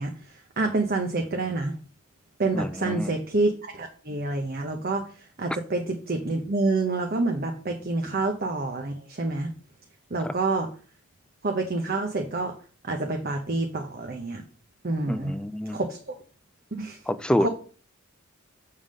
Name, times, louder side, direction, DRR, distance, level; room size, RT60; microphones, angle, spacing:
voice 1, 0.0-1.8 2.4-9.5 10.1-10.7 11.4-12.5 12.8-14.4 14.8-15.4 15.7-16.1 16.7-17.0 17.4-17.5, right 2 dB, 45° right, 4 dB, 0.8 m, -28 dB
voice 2, 2.5-3.1 10.2-10.3 15.1-15.8 17.1-17.5, left 1 dB, 5° left, 12 dB, 0.3 m, -27 dB
7.1 x 3.7 x 6.3 m, 0.39 s
head